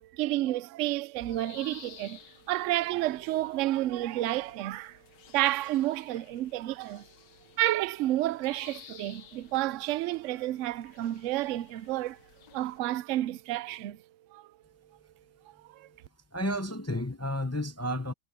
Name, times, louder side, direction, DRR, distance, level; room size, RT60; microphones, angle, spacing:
voice 1, 0.0-2.2 2.5-5.0 5.3-7.1 7.6-12.2 12.5-14.0 14.3-14.4 15.7-15.9, right 15 dB, 80° right, 0.6 m, -30 dB
sound 1, 1.2-12.8, left 8 dB, 85° left, 1.8 m, -54 dB
voice 2, 16.3-18.1, left 1 dB, 25° left, 0.3 m, -31 dB
omnidirectional pair, 1.9 m